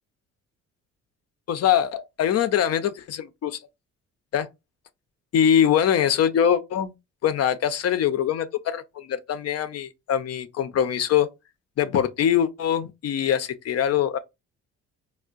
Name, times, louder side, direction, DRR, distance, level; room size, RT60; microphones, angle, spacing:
voice 1, 1.5-3.6 4.3-4.5 5.3-6.9 7.2-11.3 11.8-14.2, left 9 dB, 55° left, 0.6 m, -23 dB
4.4 x 2.1 x 2.4 m
cardioid pair, 90°, 30 cm